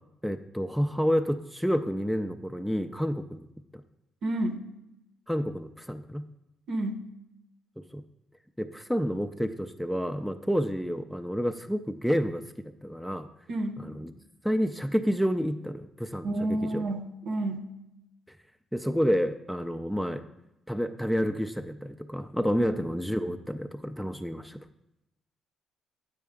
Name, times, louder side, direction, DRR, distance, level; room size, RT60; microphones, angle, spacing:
voice 1, 0.2-3.5 5.3-6.3 7.9-8.0 8.6-12.4 12.8-13.3 13.8-14.1 14.4-16.8 18.7-20.2 20.7-24.6, equal, ahead, 8 dB, 0.4 m, -29 dB
voice 2, 4.2-4.7 6.7-7.1 13.5-13.8 16.2-17.7 22.6-22.8, right 1 dB, 65° right, 5 dB, 0.8 m, -30 dB
9.2 x 4.3 x 3.6 m, 0.90 s
cardioid pair, 90°, 0 cm